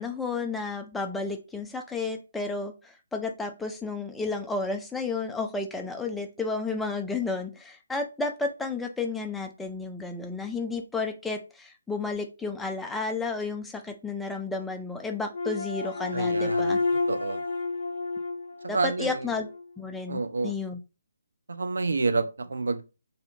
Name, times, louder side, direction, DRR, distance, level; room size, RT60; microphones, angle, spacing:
voice 1, 0.0-16.8 18.7-19.5 19.8-20.8, left 3 dB, 5° left, 0.3 m, -32 dB
sound 1, 15.3-19.6, left 3 dB, 50° left, 0.6 m, -30 dB
voice 2, 16.1-16.8 17.1-17.4 18.6-19.3 20.1-20.6 21.5-22.8, right 3 dB, 65° right, 0.4 m, -29 dB
2.7 x 2.0 x 2.5 m
figure-of-eight pair, 140°, 0 cm